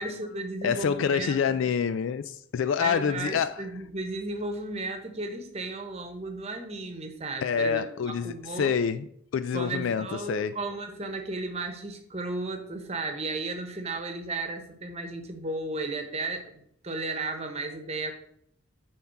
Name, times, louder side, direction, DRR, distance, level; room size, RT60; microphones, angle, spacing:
voice 1, 0.0-1.6 2.8-8.7 9.5-18.1, right 2 dB, 30° right, 1.0 m, -34 dB
voice 2, 0.6-3.6 7.4-9.1 9.3-10.6, left 7 dB, 70° left, 0.3 m, -27 dB
9.5 x 3.6 x 5.7 m
head